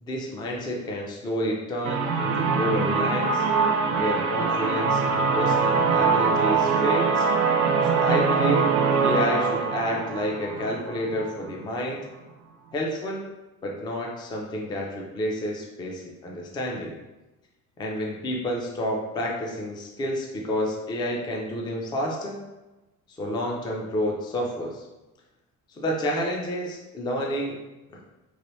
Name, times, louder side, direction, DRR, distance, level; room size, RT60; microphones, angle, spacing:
voice 1, 0.0-3.4 4.0-7.3 7.8-8.7 9.0-12.0 12.7-13.3 13.6-16.9 17.8-22.4 23.2-24.8 25.8-27.6 27.9-28.0, equal, 15° left, -1 dB, 0.3 m, -29 dB
sound 1, 1.8-11.6, right 5 dB, 65° right, 0.4 m, -23 dB
3.1 x 2.9 x 3.0 m, 1.1 s
cardioid pair, 165°, 32 cm